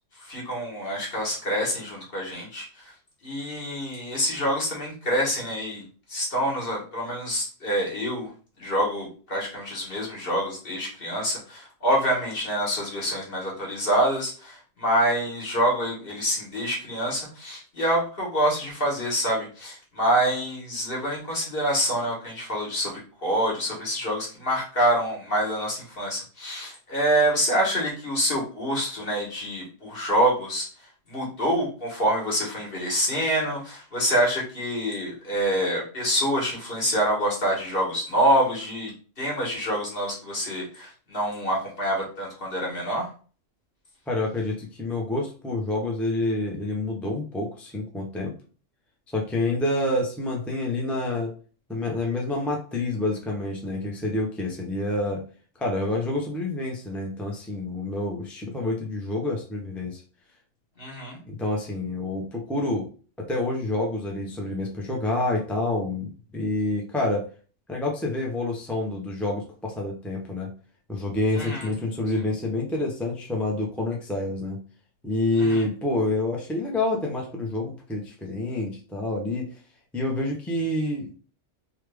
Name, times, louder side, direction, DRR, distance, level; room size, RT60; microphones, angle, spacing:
voice 1, 0.2-2.9 3.2-8.3 8.6-30.7 31.1-38.9 39.2-43.1 60.8-61.2 71.3-71.7 75.4-75.7, equal, 50° left, -3 dB, 1.5 m, -26 dB
voice 2, 44.1-48.3 49.1-51.3 51.7-55.2 55.6-60.0 61.3-62.9 63.2-67.3 67.7-70.5 70.9-74.6 75.0-79.5 79.9-81.1, left 2 dB, ahead, -1 dB, 0.4 m, -28 dB
3.3 x 2.3 x 3.3 m, 0.38 s
omnidirectional pair, 1.3 m